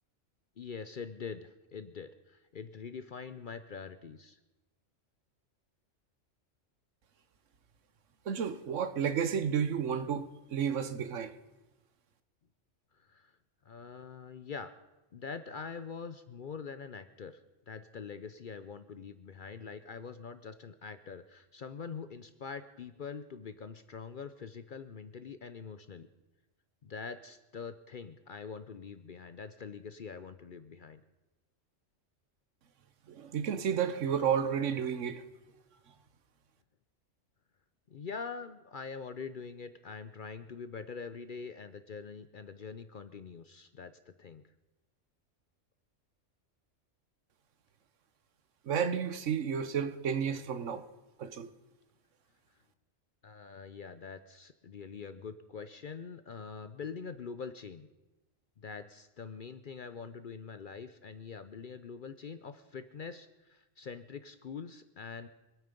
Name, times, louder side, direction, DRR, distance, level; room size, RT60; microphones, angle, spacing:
voice 1, 0.6-4.4 12.9-13.3 13.6-14.8 15.1-17.4 17.7-26.1 26.8-31.0 37.9-44.5 53.2-57.9 58.6-65.3, left 5 dB, 50° left, 0.6 m, -44 dB
voice 2, 8.3-11.4 33.1-35.2 48.6-50.9 51.2-51.5, right 7 dB, 70° right, 1.2 m, -32 dB
25.0 x 9.2 x 5.2 m
omnidirectional pair, 1.3 m